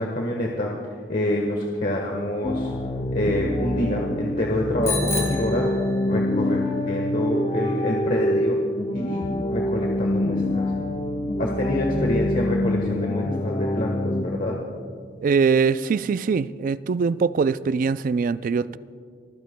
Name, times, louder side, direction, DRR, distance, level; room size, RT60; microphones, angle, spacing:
voice 1, 0.0-2.7 3.1-5.7 6.1-8.6 8.9-10.7 11.4-14.6, left 1 dB, 50° left, 0 dB, 1.3 m, -27 dB
sound 1, 2.4-14.2, left 1 dB, 30° left, 0.8 m, -26 dB
Bicycle bell, 4.8-6.4, left 2 dB, 15° left, 2.2 m, -31 dB
voice 2, 15.2-18.8, right 5 dB, 45° right, 16 dB, 0.3 m, -22 dB
27.5 x 14.5 x 2.2 m, 2.1 s
head